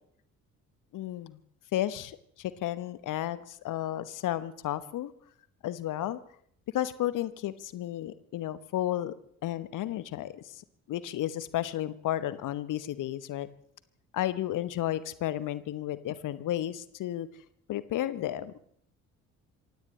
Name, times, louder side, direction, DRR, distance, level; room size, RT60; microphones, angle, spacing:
voice 1, 0.9-1.4 1.7-5.1 5.6-6.2 6.7-9.1 9.4-13.5 14.1-17.3 17.7-18.6, left 13 dB, 50° left, 15 dB, 1.1 m, -33 dB
27.0 x 16.5 x 3.3 m, 0.65 s
figure-of-eight pair, 50°, 41 cm